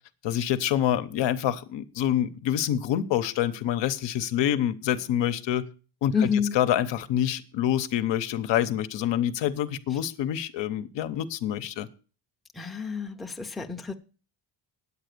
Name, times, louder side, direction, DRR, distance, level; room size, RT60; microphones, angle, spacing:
voice 1, 0.2-5.7 6.0-6.3 6.5-11.9, left 11 dB, 70° left, 0.9 m, -26 dB
voice 2, 6.1-6.6 12.5-13.9, left 6 dB, ahead, 0.6 m, -28 dB
9.3 x 8.7 x 6.7 m
cardioid pair, 145°, 45 cm